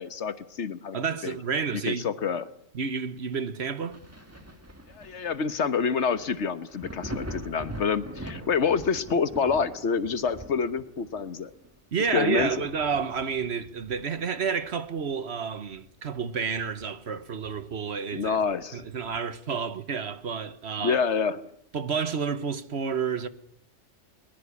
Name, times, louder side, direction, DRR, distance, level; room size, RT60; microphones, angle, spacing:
voice 1, 0.0-1.3 1.8-2.5 5.0-11.5 12.1-12.5 18.1-18.8 20.8-21.4, left 6 dB, 70° left, 1.4 m, -27 dB
voice 2, 0.9-2.1 2.7-4.0 11.9-18.4 18.7-21.0 21.7-23.3, right 6 dB, 65° right, 1.4 m, -30 dB
Thunder, 3.9-15.3 15.7-17.2 17.5-17.6 18.2-19.5 20.9-21.0, right 1 dB, 10° right, 1.9 m, -44 dB
21.5 x 20.5 x 8.4 m
omnidirectional pair, 1.2 m